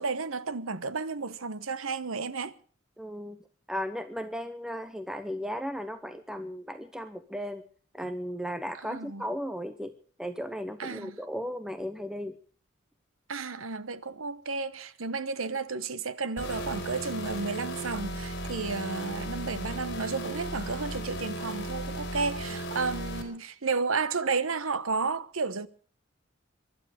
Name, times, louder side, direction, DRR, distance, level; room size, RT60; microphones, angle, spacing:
voice 1, 0.0-2.5 8.8-9.2 10.8-11.2 13.3-25.7, right 4 dB, 90° right, 1.0 m, -32 dB
voice 2, 3.0-3.4 3.7-7.6 7.9-9.9 10.2-12.3, equal, 5° right, 0.8 m, -35 dB
sound 1, 16.4-23.2, right 1 dB, 55° left, 4.7 m, -36 dB
23.5 x 11.5 x 5.1 m
head